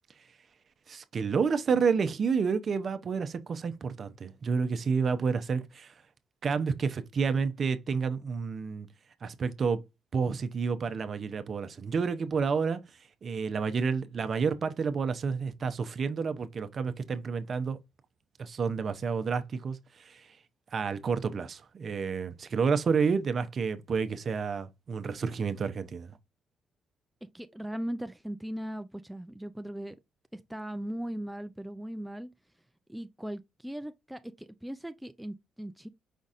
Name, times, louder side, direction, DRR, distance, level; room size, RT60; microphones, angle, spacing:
voice 1, 0.9-5.9 6.4-8.9 9.2-9.8 10.1-12.8 13.2-17.8 18.4-20.3 20.7-26.1, right 5 dB, 50° right, 0.6 m, -30 dB
voice 2, 27.3-30.0 30.3-32.3 32.9-35.9, right 1 dB, 5° right, 0.3 m, -38 dB
5.2 x 3.9 x 2.4 m
cardioid pair, 90°, 0 cm